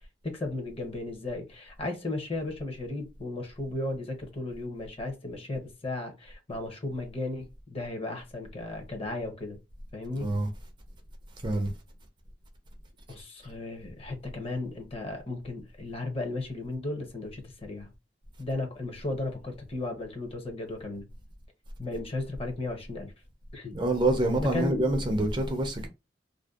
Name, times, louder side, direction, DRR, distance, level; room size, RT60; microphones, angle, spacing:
voice 1, 0.2-9.6 9.9-10.3 13.1-17.9 18.4-21.1 21.8-23.1 23.5-23.7 24.4-24.9, left 2 dB, 35° left, 0.6 m, -35 dB
voice 2, 10.2-10.5 11.4-11.7 23.7-25.9, right 2 dB, 25° right, 0.4 m, -26 dB
2.5 x 2.1 x 2.3 m
head